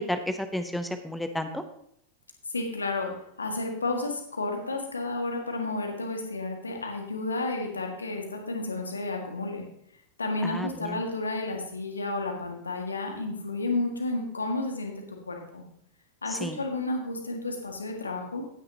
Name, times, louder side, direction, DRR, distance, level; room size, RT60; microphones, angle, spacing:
voice 1, 0.0-1.6 10.4-11.0 16.3-16.6, left 1 dB, 5° left, 8 dB, 0.8 m, -32 dB
voice 2, 2.5-9.7 10.2-15.6 16.2-18.4, left 2 dB, 75° left, 2 dB, 1.9 m, -31 dB
17.5 x 6.6 x 2.9 m, 0.71 s
figure-of-eight pair, 90°, 0 cm